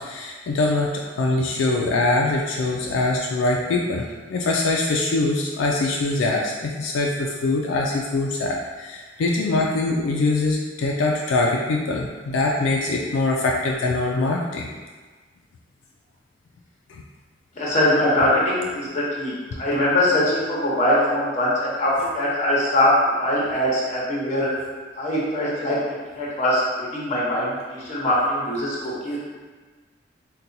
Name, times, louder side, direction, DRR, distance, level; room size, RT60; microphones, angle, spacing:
voice 1, 0.0-14.7 16.9-17.0, left 2 dB, 80° left, -1 dB, 0.3 m, -23 dB
voice 2, 17.6-19.3 19.6-22.9 23.2-24.5 25.0-25.8 26.2-29.2, left 1 dB, 35° left, -6 dB, 0.8 m, -22 dB
4.0 x 2.2 x 2.6 m, 1.4 s
head